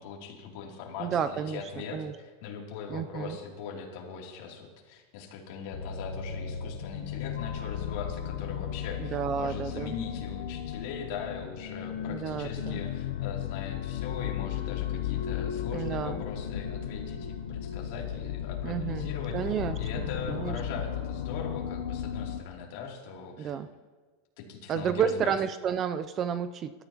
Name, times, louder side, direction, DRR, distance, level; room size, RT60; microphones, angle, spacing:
voice 1, 0.0-23.5 24.4-25.3, left 6 dB, 55° left, -1 dB, 2.9 m, -40 dB
voice 2, 1.0-2.1 2.9-3.4 9.0-9.9 12.1-12.8 15.7-16.2 18.6-20.6 23.4-23.7 24.7-26.9, right 8 dB, 25° right, 11 dB, 0.4 m, -31 dB
sound 1, 5.7-22.4, left 9 dB, 90° left, 0.8 m, -35 dB
21.0 x 13.0 x 2.9 m, 1.4 s
supercardioid pair, 160°, 0 cm